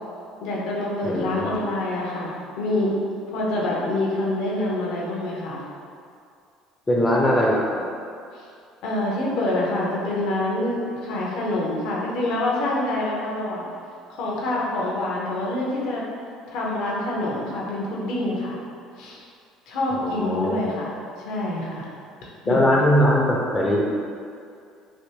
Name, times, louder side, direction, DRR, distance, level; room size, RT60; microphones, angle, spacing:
voice 1, 0.4-3.0 3.3-5.6 8.8-13.6 14.1-16.0 16.5-18.6 19.0-19.2 19.7-21.9 22.4-22.6, left 1 dB, 70° left, -4 dB, 0.7 m, -26 dB
voice 2, 1.0-1.5 6.9-7.8 19.9-20.6 22.5-23.8, equal, 20° left, -2 dB, 0.5 m, -21 dB
3.4 x 2.6 x 2.8 m, 2.4 s
hypercardioid pair, 65°, 0 cm